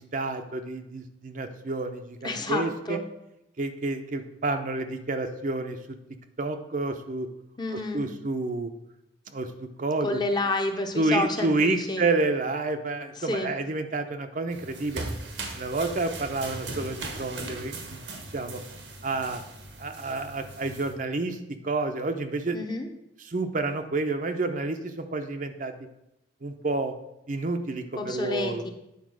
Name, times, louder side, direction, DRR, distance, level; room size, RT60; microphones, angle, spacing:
voice 1, 0.0-3.0 3.6-5.8 6.4-7.3 7.9-8.7 9.3-10.2 11.0-15.0 15.5-18.0 18.3-18.6 19.0-19.4 19.8-21.4 21.6-22.6 23.2-25.7 26.4-26.9 27.3-28.6, right 2 dB, 45° right, 7 dB, 0.7 m, -29 dB
voice 2, 2.2-3.0 7.6-8.1 10.0-12.1 13.2-13.5 22.5-22.9 27.9-28.7, left 2 dB, 25° left, 4 dB, 0.8 m, -30 dB
sound 1, 14.5-20.9, right 2 dB, 85° right, 1.4 m, -39 dB
9.5 x 4.3 x 6.2 m, 0.87 s
head